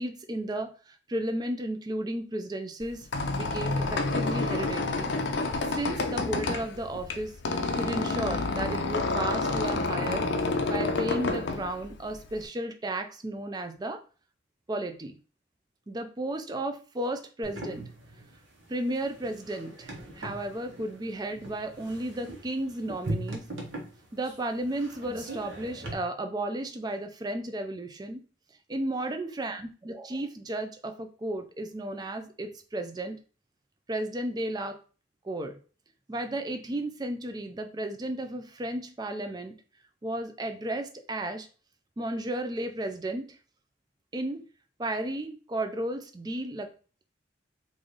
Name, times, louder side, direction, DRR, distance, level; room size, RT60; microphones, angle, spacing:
voice 1, 0.0-3.1 3.3-5.1 5.7-10.3 10.7-14.0 14.7-15.2 15.9-17.8 18.7-23.4 24.1-28.2 28.7-33.2 33.9-34.8 35.2-35.6 36.1-39.5 40.0-41.5 42.0-43.4 44.1-44.4 44.8-46.7, right 1 dB, 20° right, 6 dB, 0.4 m, -33 dB
Squeak, 2.8-12.4, left 3 dB, 65° left, 0.5 m, -29 dB
sound 1, 17.4-25.9, right 1 dB, 90° right, 1.0 m, -40 dB
3.1 x 2.5 x 3.8 m, 0.37 s
head